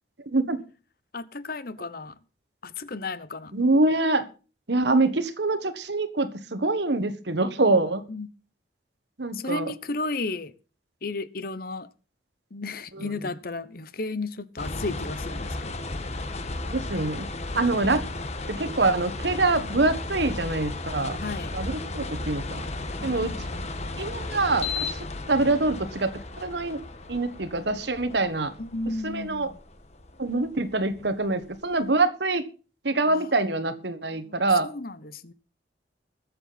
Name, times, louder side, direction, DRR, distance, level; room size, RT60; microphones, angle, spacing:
voice 1, 0.3-0.6 3.5-4.2 4.7-8.0 9.2-9.7 13.0-13.1 16.7-17.3 17.5-18.0 18.5-21.2 21.5-22.7 23.0-23.3 24.0-24.9 25.3-26.8 27.1-28.5 29.0-29.5 30.2-32.4 32.8-34.7, right 2 dB, 70° right, 1.4 m, -25 dB
voice 2, 1.1-2.2 2.6-3.5 8.1-8.3 9.3-10.5 11.0-11.9 12.5-15.8 21.2-21.5 23.0-23.8 28.6-29.6 33.1-33.5 33.9-35.3, left 3 dB, 55° left, 1.0 m, -34 dB
sound 1, 14.6-31.7, left 2 dB, 40° left, 1.4 m, -35 dB
21.5 x 7.7 x 4.2 m
head